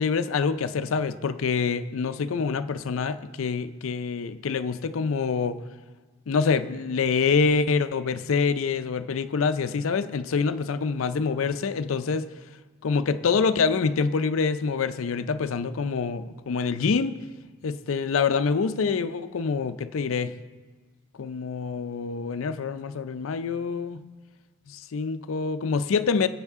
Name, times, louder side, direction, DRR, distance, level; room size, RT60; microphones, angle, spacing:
voice 1, 0.0-5.6 6.3-12.3 12.8-17.2 17.6-20.3 21.2-24.0 24.7-26.3, left 5 dB, 80° left, 11 dB, 0.5 m, -26 dB
19.0 x 8.1 x 3.6 m, 1.4 s
head